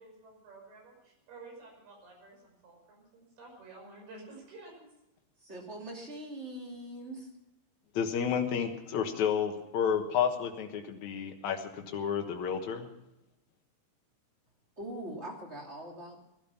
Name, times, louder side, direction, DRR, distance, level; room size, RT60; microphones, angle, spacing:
voice 1, 0.0-4.9, right 3 dB, 55° right, 0 dB, 7.4 m, -51 dB
voice 2, 5.4-7.3 14.8-16.2, right 1 dB, 20° right, -1 dB, 2.3 m, -42 dB
voice 3, 7.9-12.9, left 7 dB, 80° left, 3 dB, 1.6 m, -31 dB
18.5 x 12.5 x 5.8 m, 0.90 s
omnidirectional pair, 5.5 m